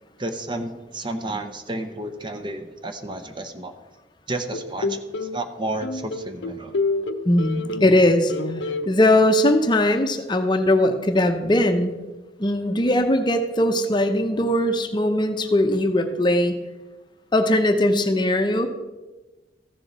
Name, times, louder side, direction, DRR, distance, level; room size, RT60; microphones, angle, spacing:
voice 1, 0.2-3.7 4.3-5.0 5.3-6.8, right 2 dB, 25° right, 8 dB, 0.7 m, -31 dB
sound 1, 4.5-5.4 5.8-8.0 8.3-8.9, left 3 dB, 80° left, 0.6 m, -28 dB
voice 2, 7.2-8.3 8.9-11.9 12.4-16.5 17.3-18.7, left 1 dB, 25° left, 6 dB, 0.7 m, -20 dB
14.5 x 7.1 x 4.2 m, 1.2 s
head